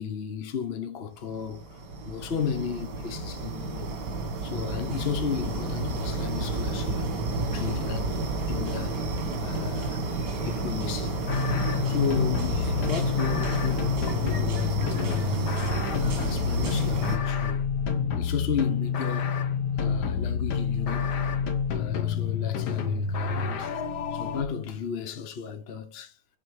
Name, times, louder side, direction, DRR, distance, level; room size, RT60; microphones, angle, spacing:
voice 1, 0.0-1.8 2.0-3.9 4.4-7.1 7.5-9.1 9.4-10.0 10.4-11.2 11.9-15.5 16.0-17.7 18.1-19.4 19.8-21.2 21.7-23.8 24.1-26.2, left 7 dB, 45° left, 1.0 m, -34 dB
sound 1, 1.3-17.2, right 2 dB, 80° right, 2.2 m, -31 dB
sound 2, 11.3-24.4, left 6 dB, 75° left, 1.6 m, -28 dB
7.5 x 4.0 x 4.9 m
omnidirectional pair, 1.8 m